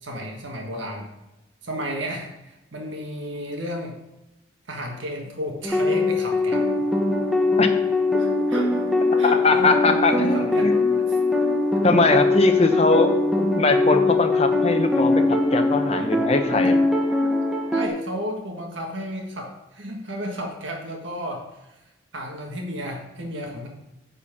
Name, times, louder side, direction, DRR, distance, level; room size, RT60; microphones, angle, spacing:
voice 1, 0.0-1.1 1.6-4.0 4.7-6.7 8.2-8.8 9.2-11.2 12.6-12.8 14.9-15.1 15.9-16.3 16.6-16.7 17.2-17.4 17.7-21.7 22.1-23.7, equal, 70° right, 1 dB, 1.5 m, -33 dB
sound 1, 5.6-17.9, left 2 dB, ahead, 0.7 m, -21 dB
voice 2, 9.4-10.7 11.8-16.8, left 3 dB, 30° left, 6 dB, 0.8 m, -21 dB
10.0 x 4.3 x 7.2 m, 0.95 s
head